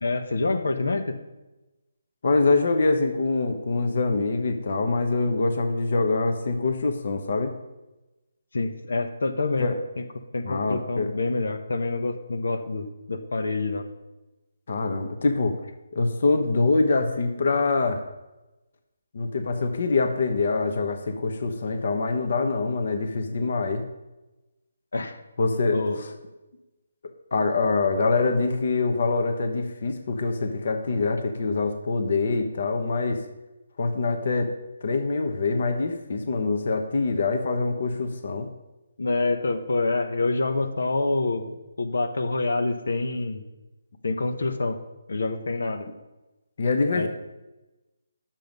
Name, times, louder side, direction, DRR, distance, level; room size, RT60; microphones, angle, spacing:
voice 1, 0.0-1.2 8.5-9.7 10.1-13.9 24.9-25.2 25.7-26.0 39.0-43.4 44.0-44.8 45.1-45.9 46.9-47.1, left 3 dB, 80° left, 6 dB, 1.1 m, -27 dB
voice 2, 2.2-7.5 9.6-9.8 10.4-11.1 14.7-15.6 15.9-18.0 19.1-23.8 25.4-26.1 27.3-33.2 33.8-38.5 46.6-47.1, left 3 dB, 50° left, 6 dB, 1.1 m, -24 dB
10.5 x 7.5 x 5.3 m, 1.0 s
hypercardioid pair, 170°, 0 cm